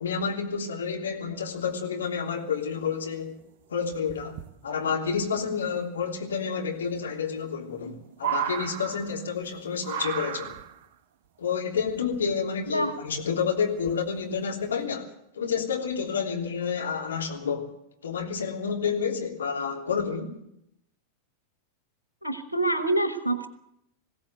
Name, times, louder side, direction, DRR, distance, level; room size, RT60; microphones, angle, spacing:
voice 1, 0.0-3.4 3.7-10.5 11.4-17.7 18.0-20.4, left 6 dB, 70° left, 3.2 m, -29 dB
sound 1, 2.8-2.9 3.2-3.5 3.9-4.5 6.0-6.1 6.3-6.4 7.0-7.1 7.4-9.5 9.8-10.9 11.8-12.5 13.2-13.3 13.8-14.2 14.6-14.8, right 9 dB, 50° right, 1.3 m, -34 dB
voice 2, 22.2-23.5, right 2 dB, 85° right, 1.3 m, -26 dB
20.5 x 16.0 x 8.0 m
figure-of-eight pair, 90°, 0 cm